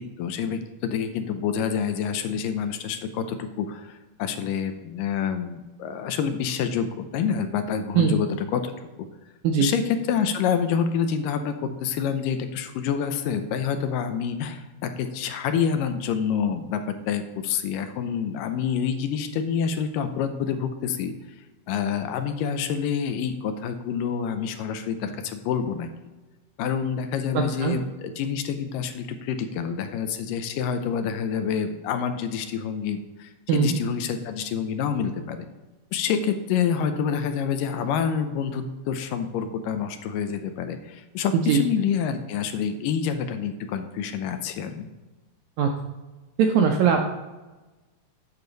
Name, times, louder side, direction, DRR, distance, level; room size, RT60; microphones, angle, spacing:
voice 1, 0.2-8.7 9.6-21.1 21.7-25.9 26.6-35.5 35.9-44.9, left 7 dB, 80° left, 8 dB, 2.2 m, -27 dB
voice 2, 27.3-27.8 33.5-33.8 41.5-41.6 45.6-45.7 46.4-47.2, right 6 dB, 80° right, 3 dB, 1.7 m, -21 dB
8.8 x 6.6 x 3.9 m, 1.2 s
omnidirectional pair, 4.0 m